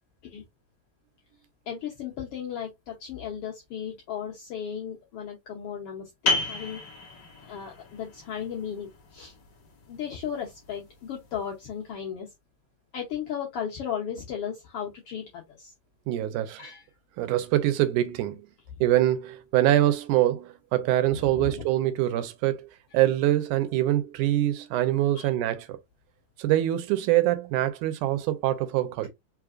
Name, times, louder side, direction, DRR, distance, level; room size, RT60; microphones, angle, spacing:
voice 1, 1.7-6.8 7.5-9.3 9.9-12.3 12.9-15.7 16.6-16.9 21.1-21.7 25.1-25.3, left 8 dB, 80° left, 1.3 m, -35 dB
sound 1, 6.3-11.6, left 3 dB, 50° left, 1.4 m, -34 dB
voice 2, 16.1-16.6 17.2-18.4 18.8-22.7 22.9-25.8 26.4-29.1, right 14 dB, 80° right, 2.1 m, -24 dB
5.0 x 3.2 x 2.4 m
omnidirectional pair, 3.6 m